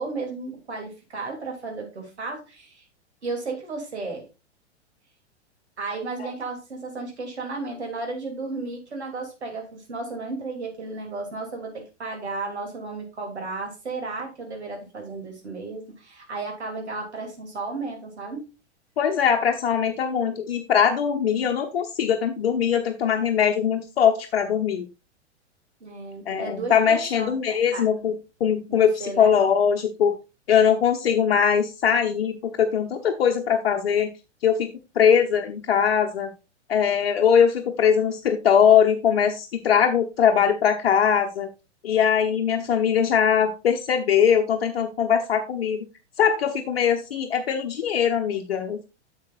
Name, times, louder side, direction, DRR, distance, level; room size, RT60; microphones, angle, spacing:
voice 1, 0.0-2.8 3.2-4.2 5.8-18.5 25.8-27.8 28.7-29.3, right 3 dB, 65° right, 2 dB, 3.0 m, -34 dB
voice 2, 19.0-24.9 26.3-30.1 30.5-34.1 34.4-34.7 34.9-36.3 36.7-41.5 41.8-45.8 46.2-48.8, left 8 dB, 55° left, 4 dB, 1.0 m, -21 dB
10.5 x 7.3 x 2.5 m, 0.28 s
figure-of-eight pair, 100°, 35 cm